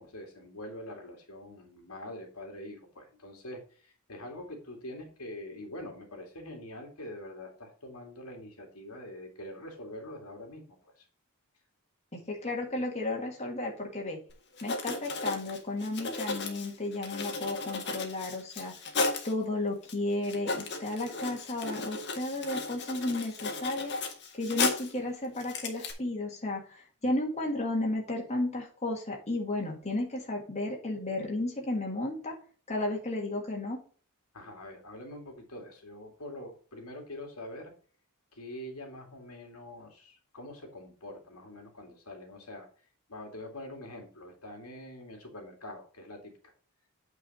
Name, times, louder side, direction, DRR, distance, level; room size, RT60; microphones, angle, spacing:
voice 1, 0.0-11.1 34.3-37.7 38.3-46.5, left 1 dB, 75° left, 2 dB, 2.4 m, -45 dB
voice 2, 12.1-14.2 14.6-18.7 19.2-23.9 24.3-32.3 32.7-33.8, left 2 dB, 30° left, 0 dB, 1.8 m, -33 dB
Writing, 14.3-14.4 14.6-19.3 19.9-20.0 20.2-25.0 25.4-25.9, left 3 dB, 50° left, 1.7 m, -34 dB
8.7 x 4.7 x 4.2 m, 0.41 s
head